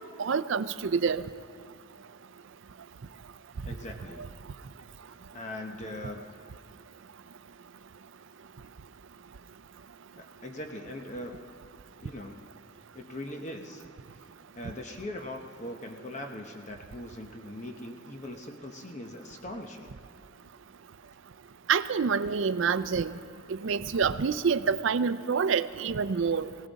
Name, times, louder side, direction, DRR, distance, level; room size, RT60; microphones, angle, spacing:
voice 1, 0.2-1.2 4.2-4.3 21.7-23.2 23.5-26.5, right 6 dB, 65° right, 14 dB, 0.5 m, -27 dB
voice 2, 3.6-4.2 5.3-6.3 10.2-11.3 12.0-12.4 12.9-13.8 14.5-19.9, left 1 dB, 35° left, 3 dB, 0.9 m, -40 dB
20.5 x 17.5 x 4.1 m, 2.4 s
head